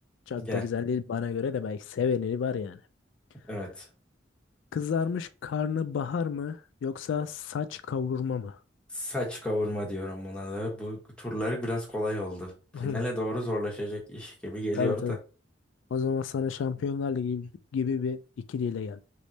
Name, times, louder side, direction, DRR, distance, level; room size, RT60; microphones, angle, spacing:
voice 1, 0.3-2.8 4.7-8.6 12.7-13.0 14.7-15.2 15.9-18.2 18.5-19.0, left 6 dB, 80° left, 0.3 m, -30 dB
voice 2, 3.5-3.9 8.9-12.5 12.8-15.2, left 1 dB, 5° left, 1.3 m, -32 dB
3.4 x 3.1 x 3.9 m
head